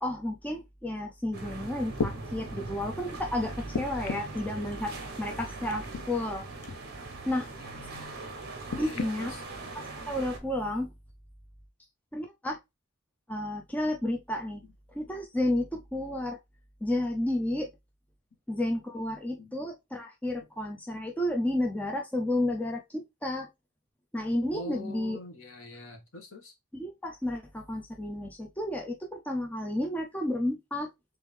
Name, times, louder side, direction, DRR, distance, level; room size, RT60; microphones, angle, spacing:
voice 1, 0.0-6.5 7.3-7.5 8.7-9.3 10.1-10.9 12.1-12.6 13.3-14.6 14.9-16.4 16.8-17.7 18.5-23.5 24.1-25.2 26.7-30.9, left 1 dB, 5° left, 0.5 m, -31 dB
sound 1, 1.3-10.4, right 3 dB, 45° right, 1.1 m, -40 dB
sound 2, 1.4-1.5 1.9-2.2 3.7-4.4 5.7-6.0 6.6-6.8 8.7-9.1 10.0-10.1, left 4 dB, 90° left, 0.6 m, -33 dB
voice 2, 7.6-8.2 8.7-9.4 19.4-19.5 24.5-26.5, left 2 dB, 60° left, 1.3 m, -44 dB
3.6 x 3.5 x 3.3 m
head